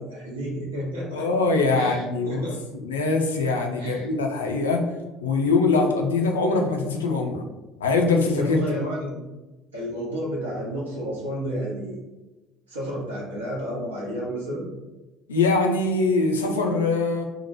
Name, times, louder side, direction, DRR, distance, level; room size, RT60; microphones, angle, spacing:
voice 1, 0.0-1.3 1.7-2.8 3.8-4.1 8.3-9.2 9.7-12.0 12.7-14.6, equal, 80° right, -5 dB, 0.6 m, -31 dB
voice 2, 1.1-2.5 2.7-4.8 5.2-7.4 7.8-8.6 15.3-17.2, left 3 dB, 75° left, 2 dB, 0.4 m, -22 dB
2.7 x 2.1 x 2.9 m, 1.1 s
figure-of-eight pair, 60°, 0 cm